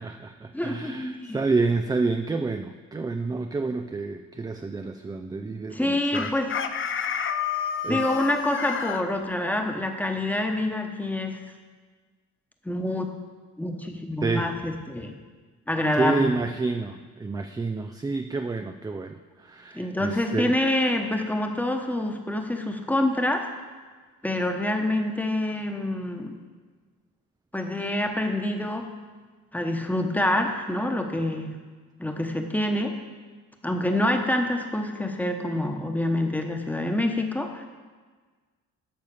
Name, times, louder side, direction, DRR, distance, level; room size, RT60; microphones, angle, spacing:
voice 1, 0.0-6.3 7.8-8.1 14.2-14.5 15.9-20.6, right 3 dB, 15° right, 7 dB, 0.4 m, -29 dB
voice 2, 0.5-1.4 5.7-6.5 7.8-11.4 12.6-13.1 13.6-15.2 15.7-16.3 19.7-23.5 24.2-26.4 27.5-28.9 29.5-31.5 32.0-32.9 33.6-37.6, left 1 dB, 5° left, 4 dB, 1.1 m, -26 dB
Chicken rooster, 6.1-9.0, left 8 dB, 40° left, 0.7 m, -29 dB
12.0 x 4.1 x 6.8 m, 1.4 s
cardioid pair, 90°, 30 cm